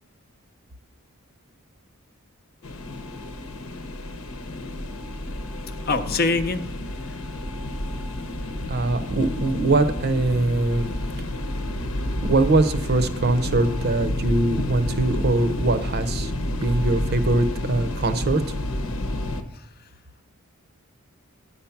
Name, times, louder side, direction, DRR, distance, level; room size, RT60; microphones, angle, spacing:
sound 1, 2.6-19.4, left 1 dB, 70° left, 1.0 m, -30 dB
voice 1, 5.3-6.7 19.5-19.9, left 3 dB, 45° left, 9 dB, 0.7 m, -26 dB
voice 2, 8.7-10.9 11.2-11.3 12.2-18.4, right 2 dB, 45° right, 9 dB, 0.7 m, -22 dB
9.7 x 7.1 x 5.8 m, 0.76 s
head